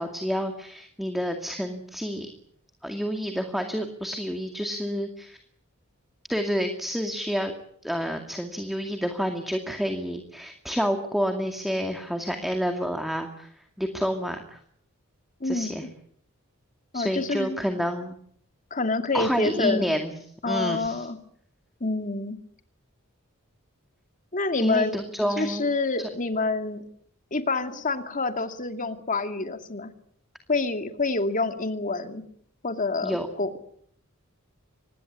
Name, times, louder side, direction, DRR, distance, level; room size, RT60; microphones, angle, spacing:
voice 1, 0.0-2.3 2.8-5.4 6.3-7.5 7.8-13.5 13.8-14.6 15.4-15.8 16.9-18.1 19.1-20.1 20.5-21.1 24.6-25.7 26.0-26.1 33.0-33.3, equal, ahead, 5 dB, 2.2 m, -29 dB
voice 2, 15.4-15.7 16.9-17.6 18.7-19.9 20.4-21.2 21.8-22.4 24.3-25.0 25.4-26.8 27.3-29.9 30.5-32.2 32.6-33.6, left 3 dB, 40° left, 7 dB, 2.5 m, -27 dB
25.5 x 20.5 x 8.4 m, 0.65 s
head